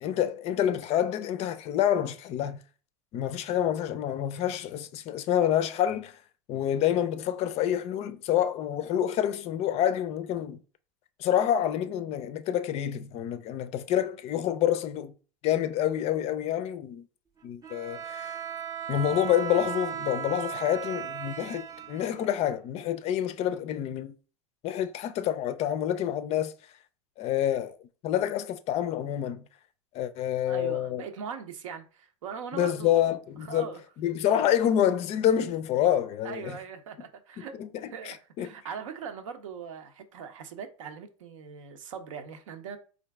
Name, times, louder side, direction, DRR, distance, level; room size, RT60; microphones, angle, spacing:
voice 1, 0.0-2.6 3.1-6.2 6.5-10.6 11.2-15.1 15.4-17.0 17.4-18.4 18.9-24.1 24.6-26.5 27.2-27.8 28.0-29.4 29.9-31.0 32.5-36.6 37.4-38.5, left 10 dB, 40° left, 0.4 m, -27 dB
Bowed string instrument, 17.6-22.7, right 9 dB, 20° right, 0.5 m, -36 dB
voice 2, 30.5-33.0 33.5-33.8 36.2-42.8, right 6 dB, 75° right, 0.7 m, -40 dB
3.8 x 2.5 x 3.3 m
hypercardioid pair, 95°, 17 cm